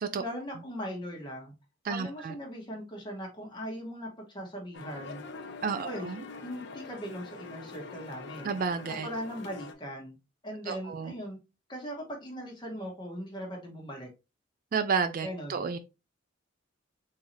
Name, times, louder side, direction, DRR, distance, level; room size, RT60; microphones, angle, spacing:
voice 1, 0.2-1.5 1.9-5.2 5.8-6.1 6.4-8.5 8.9-10.1 10.4-11.4 11.7-14.1 15.2-15.6, equal, 25° left, 1.1 m, -39 dB
voice 2, 1.8-2.3 5.6-6.2 8.4-9.1 10.7-11.1 14.7-15.8, right 5 dB, 45° right, 0.3 m, -31 dB
sound 1, 4.7-9.7, left 4 dB, 60° left, 0.6 m, -44 dB
3.8 x 2.7 x 3.1 m
head